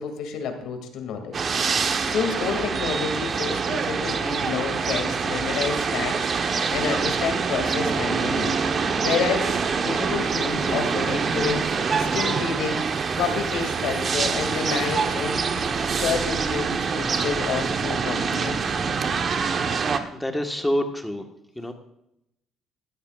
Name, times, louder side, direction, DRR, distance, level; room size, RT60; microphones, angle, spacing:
voice 1, 0.0-1.4 1.7-11.7 12.0-12.8 13.2-15.5 15.9-18.9, left 6 dB, 75° left, 5 dB, 2.4 m, -29 dB
sound 1, 1.3-20.0, right 5 dB, 40° right, 1.1 m, -25 dB
Speech, 10.2-14.4 15.1-16.0, left 5 dB, 40° left, 1.7 m, -45 dB
voice 2, 19.8-21.2 21.6-21.7, equal, 5° left, 4 dB, 1.5 m, -27 dB
17.0 x 13.0 x 2.5 m, 0.81 s
cardioid pair, 105°, 0 cm